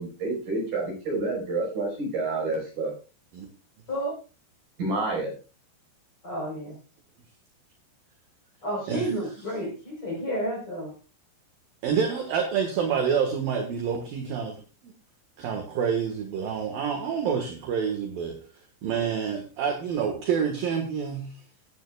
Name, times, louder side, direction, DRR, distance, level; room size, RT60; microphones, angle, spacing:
voice 1, 0.0-2.9 4.8-5.3, right 2 dB, 45° right, 0 dB, 6.7 m, -29 dB
voice 2, 6.2-6.7 8.6-10.9, equal, 30° left, -1 dB, 5.0 m, -31 dB
voice 3, 11.8-14.5 14.8-14.9 15.4-18.4 18.8-21.3, right 7 dB, 60° right, 4 dB, 2.7 m, -27 dB
17.0 x 10.5 x 2.4 m, 0.34 s
omnidirectional pair, 5.6 m